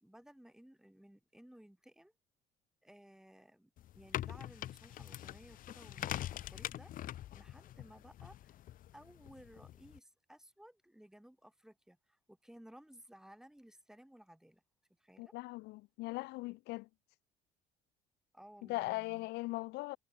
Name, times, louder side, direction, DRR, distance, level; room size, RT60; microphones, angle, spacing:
voice 1, 0.0-2.1 2.8-8.5 8.9-14.6 15.0-15.3 18.3-19.3, equal, 5° right, 2.8 m, -58 dB
sound 1, 3.8-10.0, left 13 dB, 55° left, 0.6 m, -44 dB
voice 2, 15.2-16.9 18.7-20.0, left 21 dB, 90° left, 0.8 m, -39 dB
cardioid pair, 110°, 17 cm